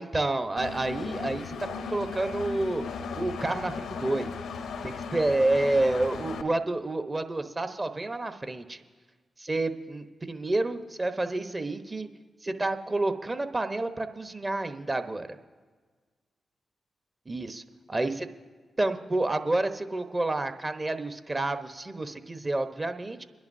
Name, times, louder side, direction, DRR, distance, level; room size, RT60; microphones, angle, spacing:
voice 1, 0.0-2.8 3.1-4.3 4.8-8.8 9.4-12.1 12.4-15.3 17.3-17.6 17.9-18.3 18.8-23.2, right 2 dB, 30° right, 8 dB, 1.0 m, -29 dB
Engine, 0.6-6.4, left 5 dB, 80° left, 0.6 m, -36 dB
26.5 x 10.5 x 2.7 m, 1.5 s
supercardioid pair, 40°, 0 cm